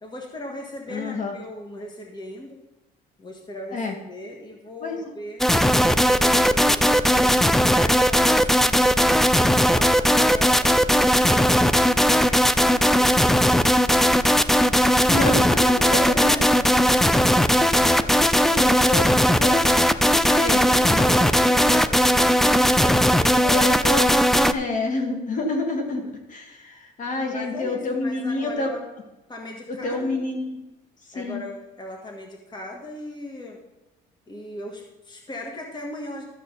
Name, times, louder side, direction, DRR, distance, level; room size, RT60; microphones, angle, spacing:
voice 1, 0.0-2.6 3.2-3.8 4.1-5.4 6.0-10.7 11.2-13.8 15.5-17.5 17.8-18.2 18.4-19.4 20.2-23.7 27.3-28.9 29.3-30.2 31.1-33.6 34.3-36.3, left 1 dB, 25° left, 1 dB, 1.8 m, -38 dB
voice 2, 0.9-1.3 3.7-3.9 4.8-5.1 14.6-14.7 15.1-16.4 18.4-19.7 20.4-20.6 20.9-21.1 23.4-28.7 29.7-30.6 31.2-31.4, left 2 dB, 50° left, 3 dB, 2.1 m, -28 dB
sound 1, 5.4-24.5, equal, ahead, 0.4 m, -18 dB
13.0 x 7.4 x 4.1 m, 1.0 s
cardioid pair, 110°, 17 cm